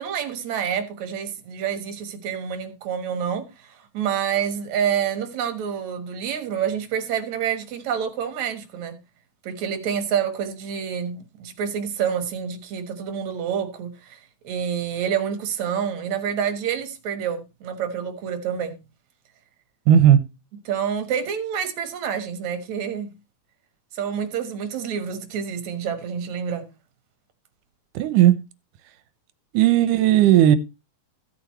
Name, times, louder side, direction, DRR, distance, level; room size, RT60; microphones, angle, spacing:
voice 1, 0.0-9.0 9.4-18.8 20.7-23.1 23.9-26.7, right 8 dB, 65° right, 2.6 m, -28 dB
voice 2, 19.9-20.2 28.0-28.4 29.5-30.6, right 11 dB, 80° right, 2.3 m, -15 dB
15.0 x 7.8 x 3.1 m
omnidirectional pair, 3.7 m